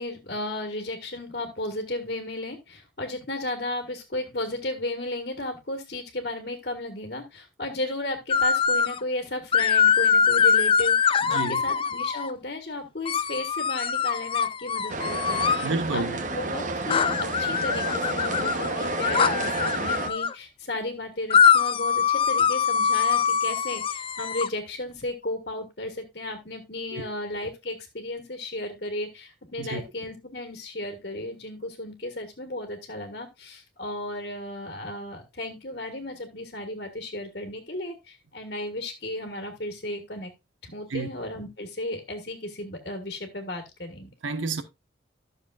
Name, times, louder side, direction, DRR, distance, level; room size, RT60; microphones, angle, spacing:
voice 1, 0.0-40.3 40.7-44.1, left 1 dB, 55° left, 1.6 m, -34 dB
sound 1, 8.3-9.0 9.5-12.3 13.1-15.7 16.9-20.3 21.3-24.5, left 7 dB, 25° left, 0.4 m, -23 dB
voice 2, 11.2-11.6 15.6-16.2 26.9-27.1 29.6-29.8 40.9-41.1 44.2-44.6, right 3 dB, 85° right, 1.2 m, -30 dB
sound 2, 14.9-20.1, right 2 dB, 40° right, 1.0 m, -30 dB
13.5 x 6.6 x 2.4 m
head